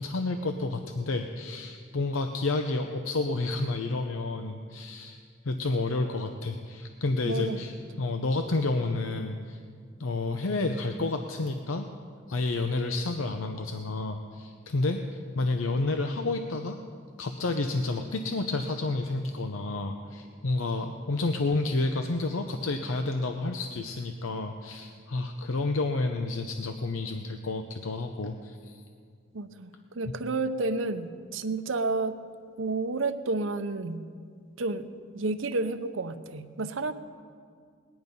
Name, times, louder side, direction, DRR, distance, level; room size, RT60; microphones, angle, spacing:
voice 1, 0.0-9.6 10.0-11.9 12.3-16.8 17.2-28.8 30.1-30.2, left 2 dB, 85° left, 6 dB, 0.7 m, -30 dB
voice 2, 7.2-7.6 7.9-8.0 29.3-32.2 32.6-34.0 34.6-36.9, right 3 dB, 70° right, 10 dB, 0.8 m, -31 dB
19.5 x 10.5 x 5.3 m, 2.1 s
head